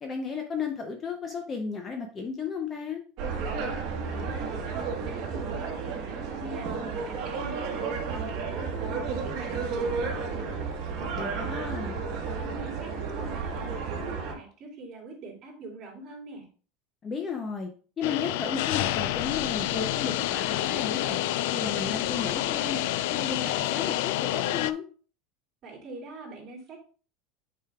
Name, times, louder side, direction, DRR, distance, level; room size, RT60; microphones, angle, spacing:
voice 1, 0.0-3.0 11.2-12.0 17.0-17.7 18.0-24.8, left 5 dB, 20° left, 4 dB, 0.6 m, -34 dB
sound 1, 3.2-14.3, right 5 dB, 45° right, 1.3 m, -32 dB
voice 2, 3.6-16.5 25.6-26.8, right 3 dB, 30° right, -3 dB, 2.5 m, -44 dB
sound 2, 18.0-24.7, left 14 dB, 65° left, 0.3 m, -28 dB
8.7 x 5.0 x 2.3 m, 0.39 s
cardioid pair, 170°, 0 cm